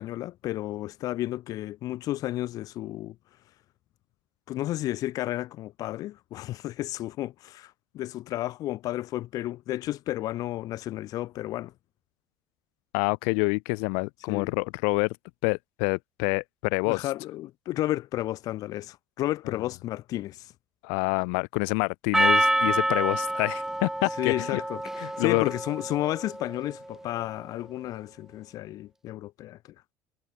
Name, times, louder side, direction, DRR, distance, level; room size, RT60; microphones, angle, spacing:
voice 1, 0.0-3.2 4.5-11.7 14.3-14.5 16.9-20.5 24.2-29.6, left 15 dB, 60° left, 2.3 m, -32 dB
voice 2, 12.9-15.2 15.4-17.1 20.8-24.6 25.0-25.4, left 40 dB or more, 85° left, 1.0 m, -27 dB
Percussion, 22.1-26.7, right 1 dB, 5° right, 4.1 m, -27 dB
cardioid pair, 110°, 7 cm